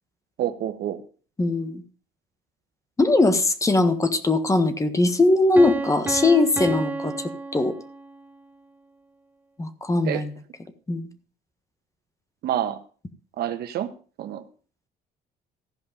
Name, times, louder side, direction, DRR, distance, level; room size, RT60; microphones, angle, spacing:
voice 1, 0.4-1.0 10.0-10.2 12.4-12.8 13.4-13.9 14.2-14.4, right 11 dB, 70° right, 9 dB, 1.3 m, -27 dB
voice 2, 1.4-1.8 3.0-7.7 9.6-10.3 10.9-11.1, left 2 dB, 20° left, 10 dB, 1.4 m, -20 dB
Piano, 5.6-8.3, right 2 dB, 10° right, 1.0 m, -31 dB
14.5 x 5.3 x 6.6 m, 0.40 s
cardioid pair, 110°, 17 cm